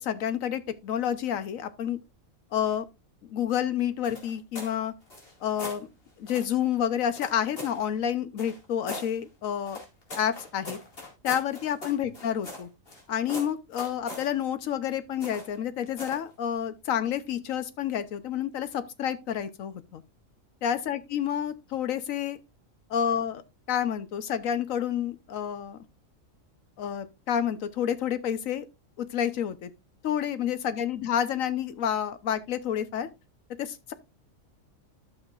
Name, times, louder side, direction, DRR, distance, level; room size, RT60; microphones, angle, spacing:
voice 1, 0.0-2.0 2.5-2.9 3.2-4.9 5.4-5.9 6.2-9.8 10.2-10.8 11.2-12.7 13.1-20.0 20.6-22.4 22.9-23.4 23.7-25.8 26.8-28.7 29.0-29.7 30.0-33.1 33.6-33.9, left 9 dB, 85° left, 1.2 m, -29 dB
sound 1, 4.0-4.7 5.1-5.8 6.3-6.5 7.2-7.8 8.4-9.1 9.6-13.0 13.3-14.3 15.2-15.6 16.0-16.2, left 2 dB, 45° left, 2.6 m, -40 dB
12.0 x 6.5 x 2.5 m
omnidirectional pair, 1.4 m